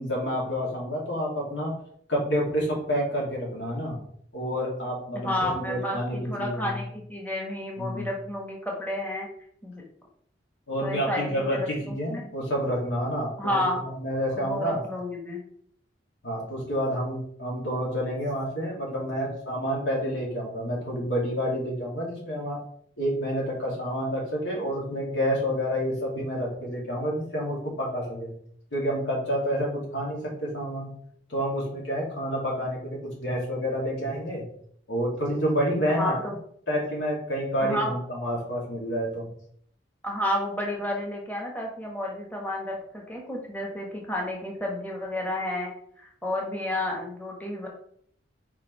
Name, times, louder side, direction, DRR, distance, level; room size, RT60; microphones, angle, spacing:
voice 1, 0.0-1.7 2.1-4.0 4.3-6.8 7.8-8.1 10.7-14.8 16.2-22.6 23.0-28.3 28.7-30.9 31.3-34.5 34.9-36.1 36.7-39.3, equal, 85° left, -3 dB, 2.7 m, -29 dB
voice 2, 5.1-9.3 9.6-9.8 10.8-12.3 13.4-13.8 14.3-15.4 35.9-36.3 37.6-37.9 40.0-45.7 46.0-47.7, left 1 dB, 10° left, -1 dB, 1.2 m, -31 dB
4.8 x 4.5 x 4.7 m, 0.64 s
head